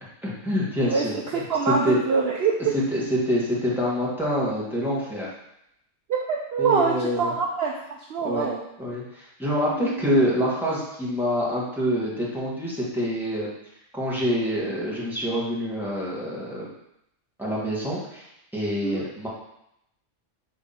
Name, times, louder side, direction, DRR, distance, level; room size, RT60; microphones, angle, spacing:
voice 1, 0.2-1.4 1.8-2.0 2.9-5.3 6.6-7.3 8.2-8.5 8.8-13.5 13.9-16.7 17.4-18.3 18.5-19.3, equal, ahead, -7 dB, 1.7 m, -26 dB
voice 2, 1.3-2.7 6.1-7.7 8.1-8.6 9.6-10.0 18.8-19.0, right 5 dB, 60° right, 0 dB, 0.8 m, -24 dB
5.4 x 3.5 x 5.7 m, 0.80 s
omnidirectional pair, 1.3 m